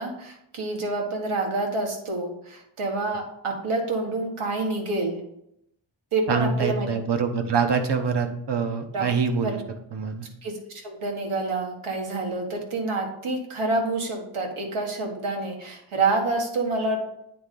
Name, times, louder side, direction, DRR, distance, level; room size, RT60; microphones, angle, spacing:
voice 1, 0.0-5.2 6.1-6.9 8.9-9.0 9.4-9.6 10.4-17.0, right 2 dB, 80° right, 1 dB, 1.5 m, -28 dB
voice 2, 6.3-9.6 9.9-10.3, right 5 dB, 55° right, 6 dB, 0.9 m, -25 dB
8.6 x 3.7 x 3.7 m, 0.77 s
wide cardioid pair, 85°, 49 cm